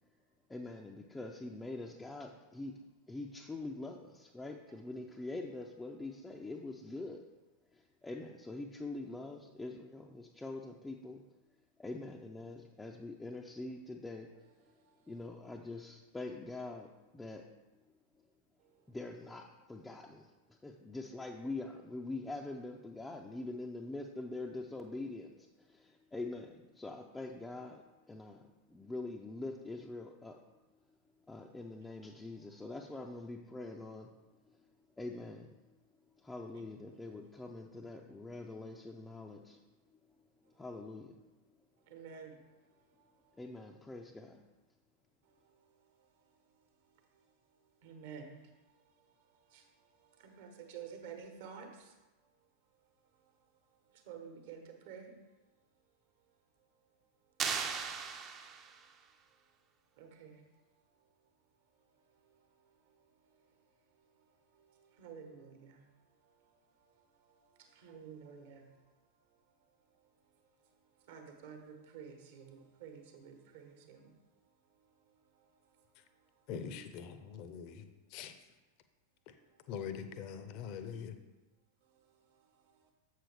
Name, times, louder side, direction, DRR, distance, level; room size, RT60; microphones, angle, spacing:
voice 1, 0.5-2.7 3.1-7.2 7.7-11.2 11.8-14.3 15.1-17.5 17.7-17.8 18.9-30.4 31.3-34.1 34.5-34.7 35.0-35.6 36.2-39.6 40.6-41.2 43.4-44.4, left 2 dB, 10° left, 0 dB, 0.5 m, -44 dB
voice 2, 14.8-15.1 36.5-36.6 41.9-42.4 43.0-43.3 45.4-46.3 47.1-47.2 47.8-49.0 49.3-51.9 53.2-53.3 53.9-55.2 60.0-60.4 62.2-63.3 64.0-64.2 64.5-65.8 66.2-66.6 67.0-68.7 70.6-70.7 71.0-74.1 74.8-75.8 76.4-76.5 79.6-79.7 81.9-82.9, right 6 dB, 55° right, 4 dB, 1.1 m, -53 dB
sound 1, 57.4-58.9, right 6 dB, 30° right, 0.6 m, -37 dB
voice 3, 76.5-77.8 78.1-78.3 79.7-81.2, left 7 dB, 45° left, 9 dB, 0.7 m, -43 dB
7.5 x 6.5 x 3.4 m, 1.1 s
figure-of-eight pair, 90°, 0 cm